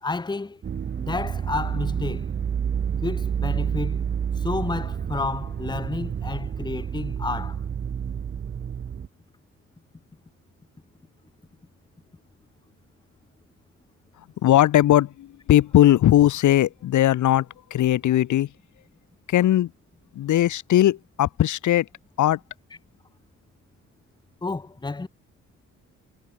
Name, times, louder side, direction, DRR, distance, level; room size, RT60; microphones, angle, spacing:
voice 1, 0.0-0.6 1.0-2.3 3.0-4.1 4.4-7.6 24.4-25.1, left 3 dB, 15° left, 1.2 m, -30 dB
sound 1, 0.6-9.1, right 7 dB, 35° right, 0.8 m, -29 dB
voice 2, 14.4-17.5 17.7-18.5 19.3-19.7 20.1-21.9 22.2-22.4, left 13 dB, 75° left, 2.3 m, -19 dB
cardioid pair, 90°, 30 cm